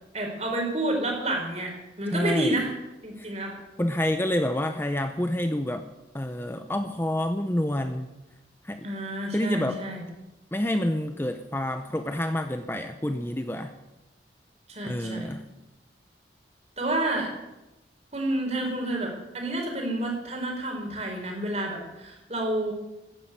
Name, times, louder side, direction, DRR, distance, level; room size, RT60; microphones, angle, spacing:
voice 1, 0.1-1.7 2.0-2.7 3.0-3.6 8.8-10.1 14.7-15.3 16.8-17.3 18.1-22.7, right 1 dB, 35° right, 1 dB, 4.3 m, -29 dB
voice 2, 2.1-2.6 3.2-3.3 3.8-5.9 6.1-8.1 8.6-8.9 9.3-9.8 10.5-13.7 14.9-15.5, left 1 dB, 10° left, 7 dB, 0.7 m, -28 dB
14.5 x 10.0 x 9.1 m, 1.0 s
head